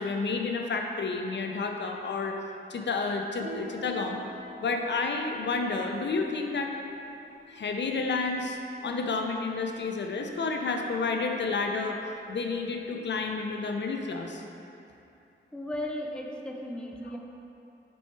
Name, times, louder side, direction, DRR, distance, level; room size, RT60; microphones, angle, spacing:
voice 1, 0.0-2.4 2.7-4.2 4.6-6.8 7.5-12.0 12.3-14.4, left 4 dB, 75° left, 3 dB, 0.5 m, -30 dB
Piano, 3.3-13.3, right 1 dB, 80° right, 1.4 m, -48 dB
voice 2, 15.5-17.2, left 1 dB, 5° left, 0 dB, 0.6 m, -35 dB
6.1 x 4.4 x 4.5 m, 2.7 s
wide cardioid pair, 100°, 19 cm